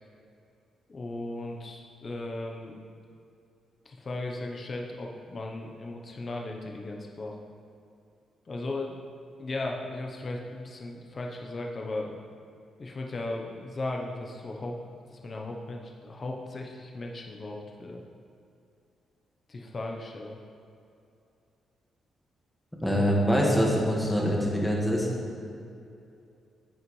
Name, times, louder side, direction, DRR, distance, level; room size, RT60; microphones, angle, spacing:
voice 1, 0.9-2.8 3.8-7.4 8.5-9.0 9.4-12.1 12.8-14.8 15.1-18.0 19.5-20.4 22.8-23.0 25.4-25.6, left 2 dB, 35° left, 0 dB, 0.9 m, -36 dB
voice 2, 22.8-25.1, equal, 5° left, -3 dB, 1.8 m, -24 dB
10.5 x 8.0 x 3.3 m, 2.6 s
cardioid pair, 115°, 0 cm